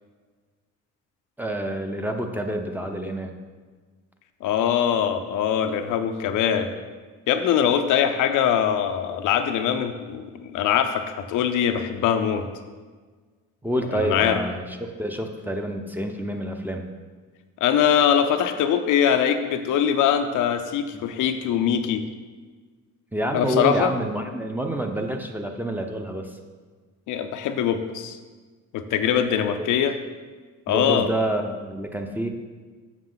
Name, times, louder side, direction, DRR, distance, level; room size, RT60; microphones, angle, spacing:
voice 1, 1.4-3.3 13.6-16.9 20.9-21.0 23.1-26.3 30.7-32.3, right 1 dB, 5° right, 4 dB, 0.7 m, -28 dB
voice 2, 4.4-6.7 7.3-12.4 13.9-14.4 17.6-22.0 23.3-23.9 27.1-28.2 28.7-30.0 30.7-31.1, left 8 dB, 85° left, 7 dB, 0.6 m, -22 dB
7.3 x 6.2 x 3.9 m, 1.5 s
cardioid pair, 90°, 30 cm